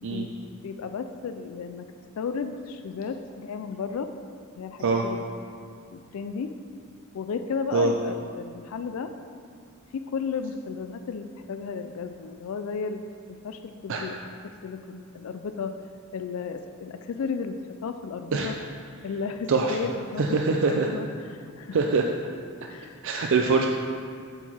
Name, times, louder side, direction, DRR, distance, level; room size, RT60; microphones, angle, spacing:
voice 1, 0.0-1.9 2.2-4.1 4.6-5.2 5.9-6.5 7.1-9.1 9.9-13.0 13.3-15.8 16.1-18.6 19.0-21.8 22.7-23.0, left 5 dB, 75° left, 8 dB, 0.4 m, -34 dB
voice 2, 20.2-20.9 21.7-22.1 23.0-23.7, right 4 dB, 60° right, 1 dB, 0.4 m, -23 dB
8.0 x 4.6 x 4.3 m, 2.3 s
head